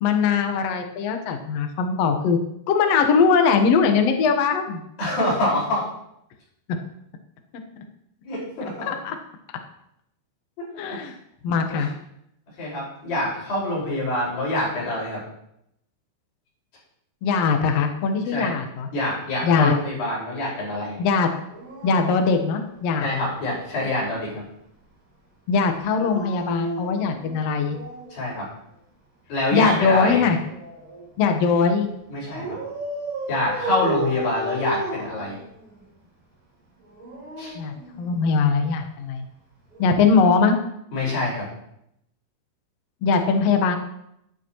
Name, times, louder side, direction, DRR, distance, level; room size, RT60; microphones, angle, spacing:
voice 1, 0.0-2.4 2.7-4.8 8.8-9.2 10.8-11.2 11.4-11.9 17.2-18.9 19.4-19.7 21.0-21.3 21.8-23.1 25.5-27.8 29.5-30.4 31.2-31.9 37.5-39.2 39.8-40.6 43.0-43.7, left 5 dB, 90° left, 5 dB, 1.4 m, -21 dB
voice 2, 5.0-5.9 8.2-8.9 10.9-11.1 11.7-11.9 12.6-15.2 18.2-18.5 18.9-20.9 23.0-24.4 28.1-28.5 29.3-30.2 32.1-32.6 33.3-35.4 37.4-37.5 40.9-41.5, left 1 dB, 60° left, -6 dB, 6.9 m, -26 dB
Dog, 21.5-23.3 25.8-28.2 29.5-31.1 32.3-35.8 36.8-38.5 39.7-39.9, right 1 dB, 40° right, 5.3 m, -34 dB
12.0 x 11.0 x 3.1 m, 0.76 s
omnidirectional pair, 4.7 m